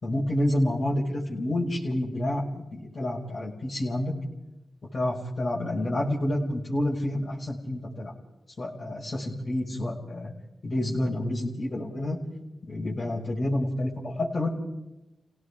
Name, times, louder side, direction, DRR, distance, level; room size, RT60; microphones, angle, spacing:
voice 1, 0.0-4.1 4.9-8.1 8.6-10.3 10.6-12.2 12.7-14.5, left 1 dB, 55° left, -4 dB, 5.8 m, -29 dB
30.0 x 18.0 x 5.0 m, 0.94 s
cardioid pair, 55°, 0 cm